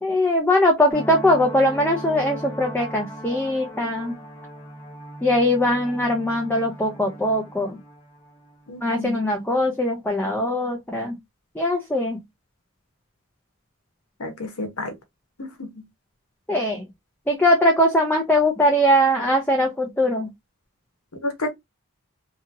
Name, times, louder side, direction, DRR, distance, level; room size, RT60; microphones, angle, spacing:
voice 1, 0.0-4.1 5.2-7.8 8.8-11.2 11.6-12.2 16.5-16.8 17.3-20.3, left 1 dB, 10° left, 0.5 m, -21 dB
sound 1, 0.9-9.3, equal, 25° left, 1.1 m, -38 dB
voice 2, 8.7-9.2 14.2-14.9 15.4-15.7 21.2-21.5, left 2 dB, 90° left, 1.0 m, -30 dB
2.8 x 2.7 x 2.5 m
head